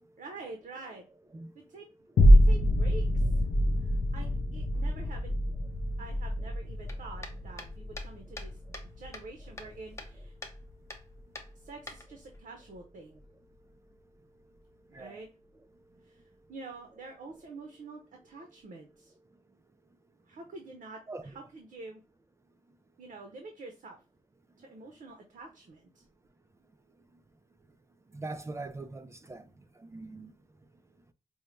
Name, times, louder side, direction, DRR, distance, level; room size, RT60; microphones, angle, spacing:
voice 1, 0.2-1.0 1.5-1.9 2.3-3.2 3.8-5.4 6.0-8.6 9.0-10.3 11.6-13.2 14.9-15.3 16.0-16.2 16.5-19.1 20.3-22.0 23.0-24.0 24.6-26.0, right 3 dB, 75° right, 0.8 m, -47 dB
sound 1, 2.2-10.7 11.2-11.3, equal, 70° left, 0.5 m, -26 dB
sound 2, 6.9-8.9 9.1-10.1 10.4-10.6 10.9-11.0 11.4-12.4, left 2 dB, 20° left, 0.6 m, -45 dB
voice 2, 28.1-29.4 29.9-30.3, right 2 dB, 20° right, 0.3 m, -41 dB
5.4 x 2.1 x 3.1 m
wide cardioid pair, 145°, 14 cm